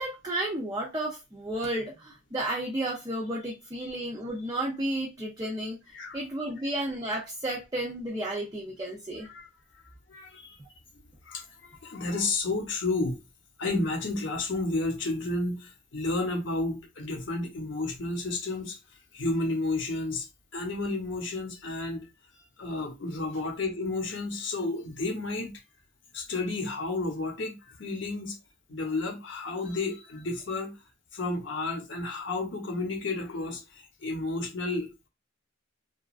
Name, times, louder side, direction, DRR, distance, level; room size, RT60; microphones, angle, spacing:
voice 1, 0.0-5.8 6.1-9.3, right 1 dB, 20° right, 0.4 m, -32 dB
voice 2, 10.1-10.5 11.2-13.2 13.6-18.8 19.1-20.3 20.5-22.0 22.6-25.5 26.1-28.4 28.7-30.7 31.1-35.1, left 2 dB, 65° left, 0.8 m, -31 dB
2.9 x 2.3 x 2.3 m
head